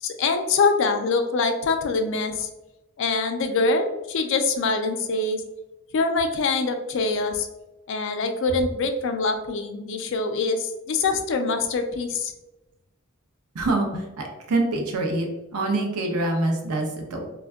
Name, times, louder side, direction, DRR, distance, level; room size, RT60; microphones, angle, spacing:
voice 1, 0.0-2.5 3.0-5.4 5.9-7.5 7.9-12.3, left 3 dB, 55° left, 6 dB, 0.3 m, -24 dB
voice 2, 13.5-15.3 15.5-17.3, right 2 dB, 90° right, 3 dB, 0.5 m, -25 dB
3.4 x 2.1 x 2.2 m, 1.0 s
head